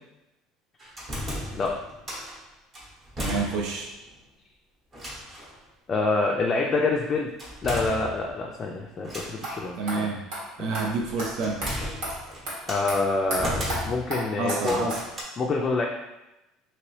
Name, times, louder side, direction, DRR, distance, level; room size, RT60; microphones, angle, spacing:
sound 1, 0.8-2.4 2.7-3.9 4.2-4.3 4.9-5.5 7.4-8.5 9.0-9.6 10.8-12.9 13.4-14.2 14.6-15.2, left 1 dB, 25° right, 0.9 m, -35 dB
voice 1, 3.2-3.9 9.8-10.3 10.6-11.6 14.4-15.0, right 3 dB, 60° right, 0 dB, 0.6 m, -28 dB
voice 2, 5.9-7.3 7.6-10.1 10.6-10.7 12.7-13.5 13.8-14.9 15.4-15.9, left 3 dB, 30° left, 0 dB, 0.3 m, -26 dB
sound 2, 9.4-9.5 9.9-10.0 10.3-10.4 10.7-10.8 11.2-11.3 11.6-11.7 12.0-12.1 12.5-12.6 12.9-13.0 13.3-13.4 13.7-13.8 14.1-14.2 14.5-14.6 14.9-15.0, right 1 dB, 80° right, 1.4 m, -31 dB
2.9 x 2.9 x 3.1 m, 0.95 s
cardioid pair, 140°, 0 cm